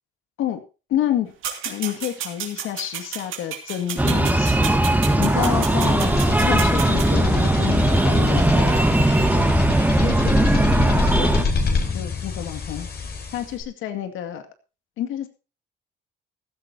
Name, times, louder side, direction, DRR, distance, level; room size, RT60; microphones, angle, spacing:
voice 1, 0.9-1.3 1.6-9.5 10.0-11.5 11.9-12.9 13.3-14.5 15.0-15.3, left 11 dB, 90° left, 8 dB, 2.3 m, -29 dB
sound 1, 1.4-7.1, right 8 dB, 85° right, 3.3 m, -32 dB
Breathing, 4.0-11.4, right 1 dB, 10° right, 2.2 m, -19 dB
sound 2, 5.3-13.6, left 4 dB, 55° left, 4.1 m, -26 dB
15.5 x 14.5 x 2.9 m, 0.32 s
cardioid pair, 90°, 20 cm